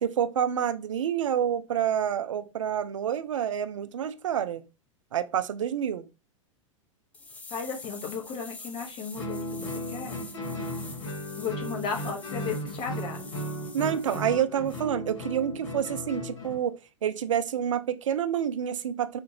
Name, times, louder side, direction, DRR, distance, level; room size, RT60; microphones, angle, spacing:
voice 1, 0.0-4.6 5.1-6.1 13.7-19.2, right 9 dB, 65° right, 0.5 m, -28 dB
sound 1, 7.1-14.3 14.7-14.8, left 3 dB, 10° left, 0.4 m, -46 dB
voice 2, 7.5-10.2 11.4-13.3, left 6 dB, 30° left, 1.0 m, -35 dB
Guitar, 9.1-16.6, equal, 70° left, 1.7 m, -36 dB
3.5 x 2.5 x 2.8 m
figure-of-eight pair, 95°, 17 cm